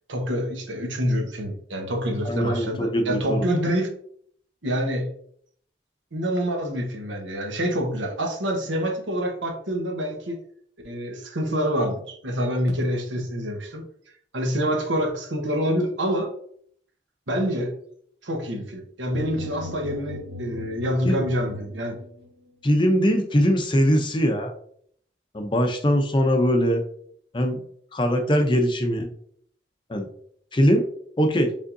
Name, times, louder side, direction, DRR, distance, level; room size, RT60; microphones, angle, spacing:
voice 1, 0.1-3.9 4.6-5.1 6.1-10.4 10.8-13.8 14.3-16.3 17.3-17.7 18.2-22.0, equal, 85° right, 2 dB, 1.2 m, -26 dB
voice 2, 2.2-3.5 21.0-21.2 22.6-24.6 25.3-26.8 27.3-27.6 27.9-29.1 29.9-30.1 30.5-30.8 31.2-31.5, equal, 25° left, 5 dB, 0.6 m, -21 dB
sound 1, 19.1-22.3, left 2 dB, 70° right, 1.1 m, -39 dB
5.2 x 3.5 x 2.6 m, 0.62 s
head